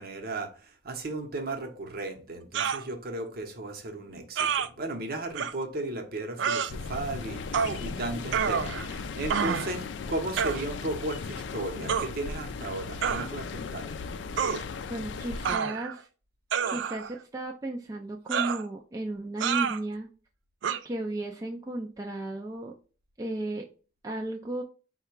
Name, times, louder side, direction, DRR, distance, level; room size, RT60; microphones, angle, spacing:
voice 1, 0.0-13.9, right 2 dB, 55° right, 0.8 m, -35 dB
sound 1, 2.5-2.8 4.4-4.7 5.4-5.5 6.4-6.7 7.5-7.8 8.3-8.9 9.3-9.7 10.4-10.6 11.9-12.1 13.0-13.3 14.4-14.6 15.5-16.0 16.5-17.1 18.3-18.6 19.4-19.8 20.6-20.8, right 7 dB, 90° right, 0.4 m, -28 dB
sound 2, 6.7-15.6, left 4 dB, 75° left, 0.4 m, -37 dB
voice 2, 14.9-16.1 16.7-20.1 20.8-22.7 23.2-23.7 24.0-24.6, right 1 dB, 20° right, 0.4 m, -34 dB
4.7 x 2.2 x 4.5 m
head